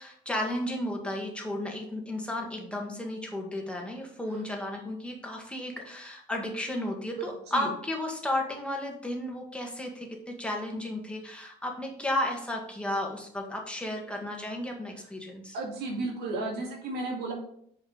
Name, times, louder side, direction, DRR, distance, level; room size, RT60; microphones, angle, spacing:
voice 1, 0.0-15.6, left 1 dB, 5° left, 0 dB, 1.9 m, -33 dB
voice 2, 15.5-17.3, right 2 dB, 75° right, -1 dB, 2.2 m, -33 dB
6.4 x 5.3 x 5.2 m, 0.66 s
cardioid pair, 110°, 17 cm